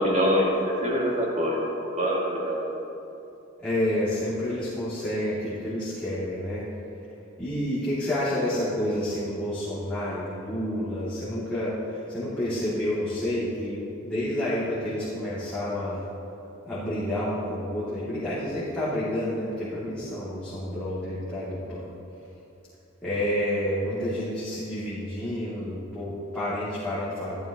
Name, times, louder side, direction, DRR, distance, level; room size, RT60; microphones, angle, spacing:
voice 1, 0.0-1.6 2.0-2.7, equal, 35° right, -4 dB, 2.2 m, -24 dB
voice 2, 3.6-6.7 7.4-11.7 12.1-16.0 16.6-21.9 23.0-27.5, left 1 dB, 5° left, -13 dB, 2.7 m, -29 dB
15.0 x 12.5 x 3.0 m, 2.9 s
head